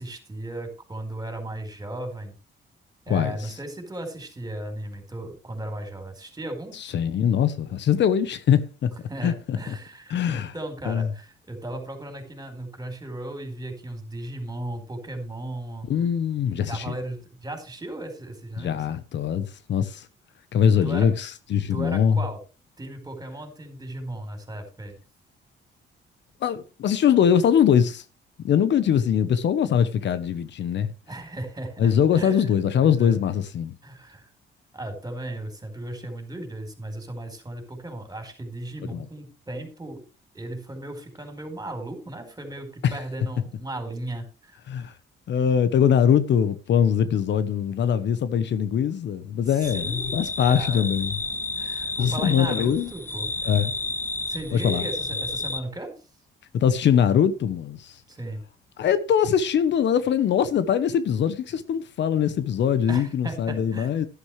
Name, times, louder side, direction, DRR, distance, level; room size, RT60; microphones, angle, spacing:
voice 1, 0.0-2.4 3.0-6.7 9.1-15.9 16.7-18.8 20.8-21.1 21.7-22.4 22.8-25.0 31.1-33.2 33.8-34.3 34.7-40.0 40.3-44.9 49.5-50.2 50.5-50.9 51.6-53.5 54.2-55.9 58.1-58.4 62.9-63.9, right 1 dB, 20° right, 4.7 m, -36 dB
voice 2, 6.8-8.9 9.2-9.8 10.1-10.5 10.9-11.1 15.9-16.9 18.6-20.1 20.5-22.2 26.4-28.0 28.4-30.9 31.8-33.7 38.9-39.1 42.8-42.9 44.7-44.9 45.3-51.2 52.0-52.9 53.4-53.7 54.5-54.8 56.5-58.0 58.8-64.1, left 8 dB, 65° left, 1.0 m, -22 dB
sound 1, 49.6-55.6, left 3 dB, 10° left, 1.3 m, -31 dB
11.5 x 11.5 x 3.3 m
cardioid pair, 90°, 20 cm